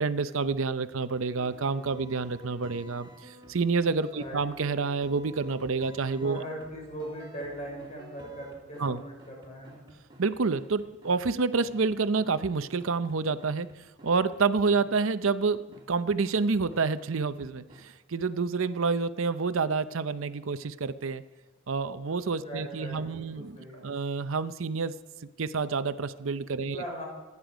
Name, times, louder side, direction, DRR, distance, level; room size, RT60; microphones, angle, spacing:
voice 1, 0.0-6.4 8.8-9.0 10.2-13.7 14.0-21.2 21.7-23.6 23.8-25.0 25.4-26.8, right 4 dB, 65° right, 12 dB, 0.6 m, -28 dB
sound 1, 1.3-14.4 14.7-14.9 15.2-15.3 15.7-15.9 16.2-16.3 16.7-16.8 17.2-17.3 17.7-17.8 18.2-18.3, right 1 dB, 20° right, 2.3 m, -51 dB
voice 2, 6.2-9.8 22.4-24.0 26.6-27.0, right 1 dB, 30° left, -1 dB, 5.6 m, -40 dB
26.5 x 9.8 x 5.1 m, 1.2 s
head